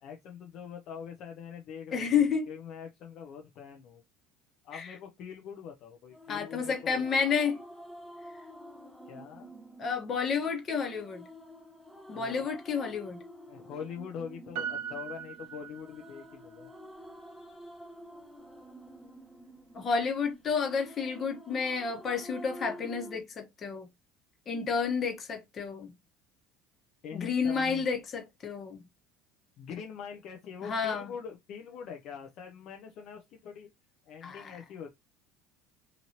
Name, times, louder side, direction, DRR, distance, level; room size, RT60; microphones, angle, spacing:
voice 1, 0.0-4.0 4.6-7.0 9.1-9.5 12.1-12.5 13.5-16.7 27.0-27.9 29.6-33.7 34.1-34.9, left 7 dB, 60° left, 0.5 m, -43 dB
voice 2, 1.9-2.5 4.7-4.9 6.3-7.6 9.8-11.2 12.1-13.2 19.7-23.9 24.5-25.9 27.1-28.8 30.6-31.1 34.2-34.6, left 6 dB, 40° left, 1.0 m, -30 dB
sound 1, 6.1-23.2, equal, ahead, 0.8 m, -49 dB
Piano, 14.6-16.3 16.7-16.8, right 8 dB, 70° right, 0.7 m, -39 dB
2.8 x 2.6 x 2.8 m
hypercardioid pair, 80°, 0 cm